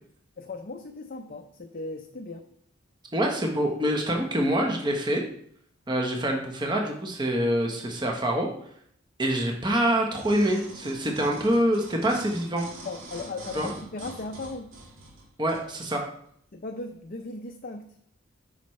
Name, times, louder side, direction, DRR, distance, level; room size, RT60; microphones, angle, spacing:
voice 1, 0.4-2.4 12.8-14.7 16.5-18.0, left 3 dB, 45° left, 4 dB, 0.6 m, -37 dB
voice 2, 3.1-5.2 5.9-8.5 9.2-12.6 13.5-13.7 15.4-16.0, right 1 dB, 20° right, 2 dB, 1.1 m, -25 dB
sound 1, 10.2-15.7 16.2-16.3, right 1 dB, 80° right, 2.9 m, -44 dB
9.3 x 5.6 x 3.2 m, 0.66 s
head